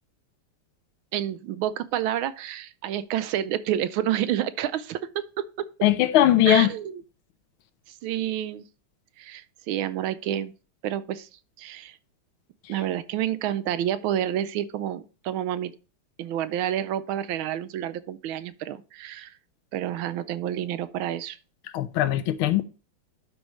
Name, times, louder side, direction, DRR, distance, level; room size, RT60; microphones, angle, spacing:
voice 1, 1.1-5.5 6.5-6.9 7.9-8.6 9.2-10.5 10.8-12.0 12.7-15.7 16.2-19.3 19.7-21.4, right 11 dB, 75° right, 1.3 m, -29 dB
voice 2, 5.8-6.7 21.7-22.6, left 12 dB, 80° left, 1.5 m, -20 dB
11.5 x 4.8 x 3.1 m
omnidirectional pair, 2.4 m